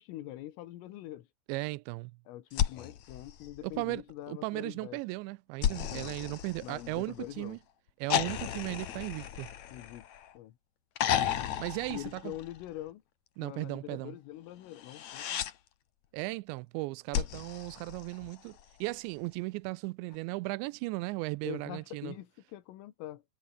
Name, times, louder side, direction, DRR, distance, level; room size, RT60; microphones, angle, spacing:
voice 1, 0.0-1.3 2.3-5.0 5.9-6.2 6.6-7.6 9.7-10.1 10.4-10.6 11.9-13.0 13.4-15.4 21.4-23.2, left 14 dB, 90° left, 4.3 m, -44 dB
voice 2, 1.5-2.1 3.6-4.0 4.3-7.6 8.0-9.5 11.6-12.3 13.4-14.2 16.1-22.2, right 23 dB, 85° right, 2.6 m, -36 dB
sound 1, 2.5-4.1 5.6-7.3 8.1-10.4 11.0-12.8 14.8-15.5 17.1-18.6 20.1-20.2, left 10 dB, 70° left, 1.7 m, -34 dB
omnidirectional pair, 5.7 m